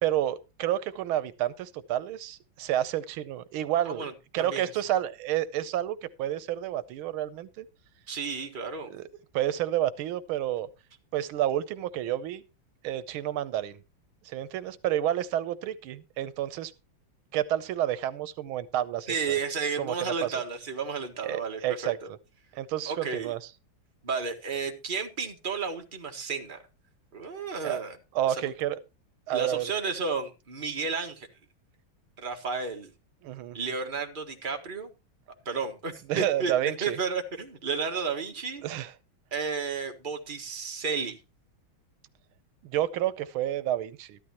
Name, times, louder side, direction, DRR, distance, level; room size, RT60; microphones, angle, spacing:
voice 1, 0.0-4.1 4.3-7.7 8.8-9.1 9.3-10.7 11.1-12.4 12.8-13.8 14.2-16.7 17.3-19.3 19.8-20.3 21.2-22.0 22.5-23.5 27.6-27.8 28.1-28.8 29.3-29.7 33.2-33.6 36.1-37.0 38.6-38.9 42.6-44.2, right 12 dB, 85° right, 1.6 m, -30 dB
voice 2, 4.4-4.7 8.1-8.9 19.1-21.9 22.9-23.3 24.0-26.6 27.1-28.0 28.3-28.5 29.3-31.3 32.2-32.9 33.5-34.9 35.4-36.5 36.8-38.6 39.3-41.2, right 5 dB, 25° right, 1.6 m, -32 dB
13.5 x 12.0 x 2.9 m
omnidirectional pair, 2.2 m